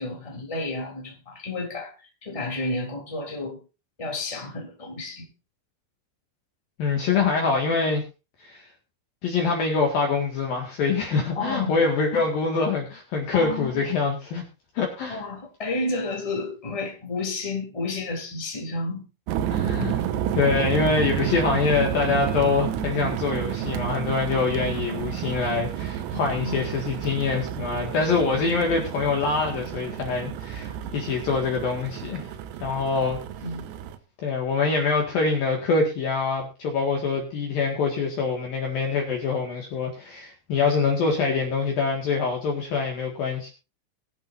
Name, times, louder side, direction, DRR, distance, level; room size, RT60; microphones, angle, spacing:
voice 1, 0.0-1.9 2.2-3.6 4.0-5.3 7.1-7.2 11.3-11.8 12.1-12.3 13.3-14.0 15.1-19.0 26.1-26.7 33.4-33.7, left 2 dB, 10° left, 0 dB, 2.7 m, -31 dB
voice 2, 6.8-8.0 8.4-8.7 9.2-14.4 14.7-15.2 19.5-20.0 20.3-32.3 32.6-33.2 34.2-43.5, left 4 dB, 55° left, 1 dB, 3.0 m, -25 dB
sound 1, 19.3-34.0, right 10 dB, 85° right, 3.7 m, -30 dB
23.0 x 7.7 x 2.6 m, 0.30 s
omnidirectional pair, 6.0 m